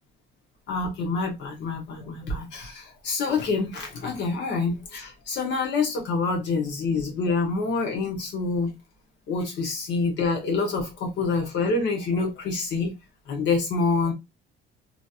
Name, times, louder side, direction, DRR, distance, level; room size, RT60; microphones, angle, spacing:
voice 1, 0.7-8.7 9.3-12.9 13.3-14.1, left 4 dB, 55° left, 1.0 m, -26 dB
3.0 x 2.7 x 2.4 m
cardioid pair, 165°, 21 cm